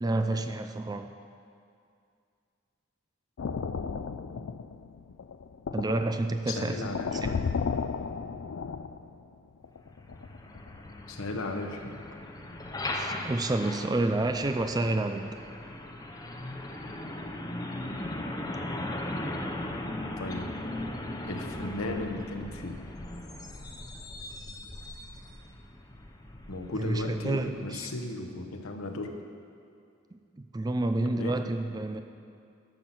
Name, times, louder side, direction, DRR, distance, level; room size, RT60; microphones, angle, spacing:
voice 1, 0.0-1.1 5.7-7.4 12.9-15.3 26.7-27.9 30.1-32.0, right 2 dB, 20° right, 8 dB, 0.3 m, -29 dB
sound 1, 3.4-9.3 9.6-11.0 11.9-12.2 12.5-12.7 13.2-13.5 13.8-13.9, left 5 dB, 70° left, 0.4 m, -35 dB
voice 2, 6.5-7.4 11.1-11.9 20.2-20.4 21.2-22.8 26.5-29.2 31.2-31.4, left 2 dB, 85° left, 5 dB, 1.0 m, -35 dB
Truck, 9.9-27.6, left 1 dB, 15° left, 0.6 m, -38 dB
12.0 x 5.9 x 7.1 m, 2.4 s
head